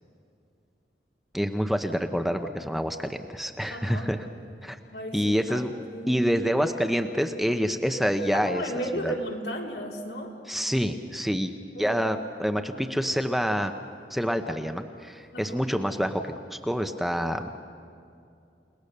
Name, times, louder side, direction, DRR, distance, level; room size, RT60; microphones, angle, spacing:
voice 1, 1.3-4.3 4.6-4.8 5.1-5.7 6.1-8.6 8.9-9.1 10.5-11.5 11.8-13.7 14.1-17.5, equal, ahead, 6 dB, 0.8 m, -27 dB
voice 2, 3.7-4.1 4.9-6.2 8.3-10.3 11.8-12.1 15.3-15.7, right 1 dB, 75° left, 0 dB, 3.4 m, -35 dB
30.0 x 19.0 x 6.7 m, 2.5 s
head